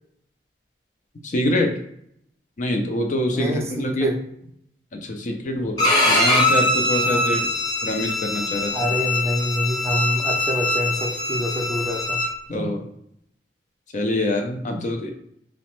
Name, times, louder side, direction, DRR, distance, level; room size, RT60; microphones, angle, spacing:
voice 1, 1.2-1.7 2.6-4.1 4.9-7.4 7.8-8.9 12.5-12.9 13.9-15.1, left 1 dB, 45° left, 4 dB, 0.5 m, -25 dB
voice 2, 3.3-4.2 7.0-7.2 8.7-12.2 12.6-12.7, equal, 15° right, 0 dB, 0.4 m, -26 dB
Bowed string instrument, 5.8-12.3, left 2 dB, 25° left, 0.9 m, -22 dB
2.9 x 2.0 x 3.0 m, 0.73 s
head